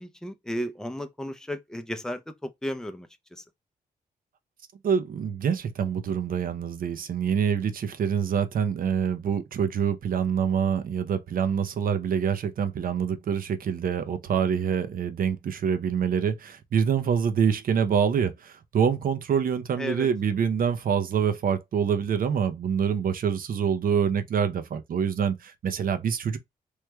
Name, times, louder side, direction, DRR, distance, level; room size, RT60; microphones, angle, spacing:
voice 1, 0.0-3.4 19.8-20.1, equal, 5° left, 0.5 m, -34 dB
voice 2, 4.8-26.4, right 7 dB, 65° right, 0.6 m, -26 dB
3.2 x 3.1 x 2.2 m
cardioid pair, 95°, 15 cm